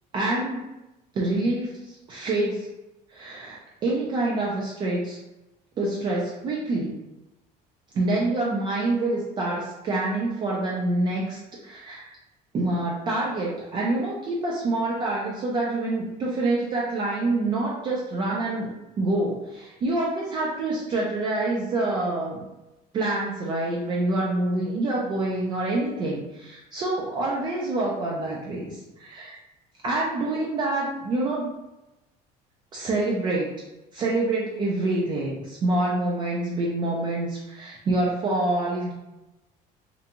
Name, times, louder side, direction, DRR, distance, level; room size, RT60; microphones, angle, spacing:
voice 1, 0.1-0.7 1.1-2.7 3.1-5.2 5.8-6.9 7.9-12.1 12.5-18.7 19.0-22.4 22.9-29.3 29.8-31.5 32.7-33.5 33.9-38.9, right 2 dB, 30° right, -4 dB, 0.3 m, -26 dB
2.5 x 2.2 x 2.8 m, 0.99 s
cardioid pair, 170°, 15 cm